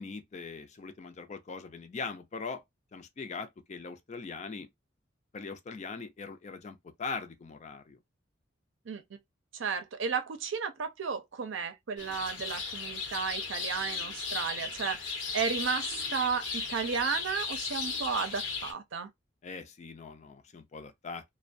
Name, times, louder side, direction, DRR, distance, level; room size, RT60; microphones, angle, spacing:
voice 1, 0.0-2.6 2.9-4.7 5.3-8.0 19.4-21.2, left 4 dB, 40° left, 0.4 m, -41 dB
voice 2, 9.5-19.1, right 6 dB, 80° right, 0.5 m, -33 dB
sound 1, 12.0-18.7, left 4 dB, 80° left, 0.8 m, -36 dB
2.3 x 2.1 x 2.5 m
head